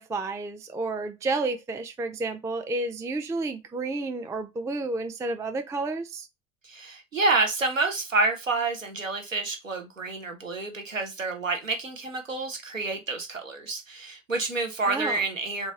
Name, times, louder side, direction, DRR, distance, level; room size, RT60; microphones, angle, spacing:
voice 1, 0.0-6.3 14.8-15.2, right 3 dB, 10° right, 0.4 m, -31 dB
voice 2, 6.6-15.7, right 3 dB, 90° right, 0.7 m, -28 dB
3.9 x 2.5 x 3.7 m
figure-of-eight pair, 55°, 38 cm